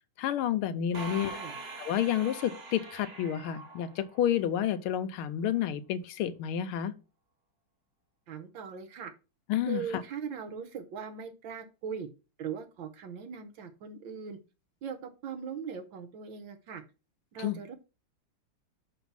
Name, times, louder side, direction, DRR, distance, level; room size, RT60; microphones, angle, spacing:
voice 1, 0.2-1.4 1.8-6.9 9.5-9.8 17.4-17.6, left 10 dB, 85° left, 1.6 m, -30 dB
sound 1, 0.9-4.6, right 3 dB, 40° right, 1.0 m, -43 dB
voice 2, 0.9-1.5 8.3-9.1 9.7-12.1 12.4-14.4 14.8-16.8 17.3-17.7, right 6 dB, 70° right, 1.5 m, -40 dB
5.9 x 4.0 x 5.4 m
omnidirectional pair, 2.3 m